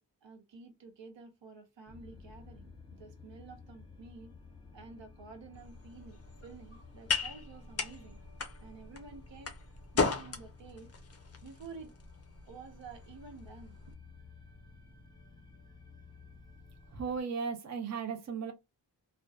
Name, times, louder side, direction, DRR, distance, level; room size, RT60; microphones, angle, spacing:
voice 1, 0.0-4.4 4.7-8.2 8.6-9.5 9.9-10.9 11.4-11.9 12.4-13.8, right 4 dB, 80° right, 0.7 m, -51 dB
sound 1, 1.9-17.2, left 3 dB, 10° left, 0.8 m, -54 dB
sound 2, 5.5-13.9, left 4 dB, 35° left, 0.4 m, -38 dB
voice 2, 16.9-18.5, right 5 dB, 40° right, 0.6 m, -36 dB
2.5 x 2.2 x 2.3 m
wide cardioid pair, 90°, 43 cm